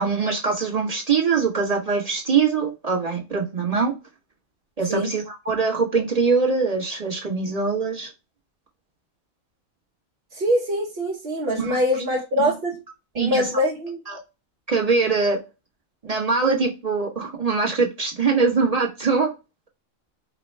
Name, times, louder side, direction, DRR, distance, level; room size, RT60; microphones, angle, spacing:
voice 1, 0.0-3.9 4.8-8.1 11.6-11.8 12.4-12.5 13.1-13.5 14.1-14.2 14.7-15.4 16.0-19.3, right 4 dB, 30° right, 1.1 m, -23 dB
voice 2, 10.3-12.8 13.1-14.0, equal, 50° right, 1.0 m, -23 dB
5.2 x 2.2 x 3.2 m
omnidirectional pair, 1.4 m